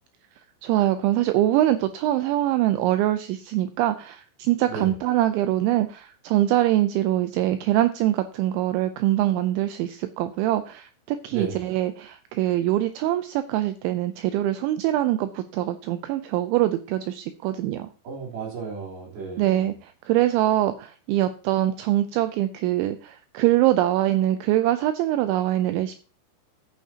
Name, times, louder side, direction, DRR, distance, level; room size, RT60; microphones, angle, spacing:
voice 1, 0.6-17.9 19.4-26.0, right 14 dB, 85° right, 10 dB, 2.7 m, -23 dB
voice 2, 11.3-11.6 18.0-19.6, right 5 dB, 50° right, -2 dB, 5.0 m, -33 dB
14.0 x 9.0 x 2.8 m, 0.38 s
omnidirectional pair, 5.8 m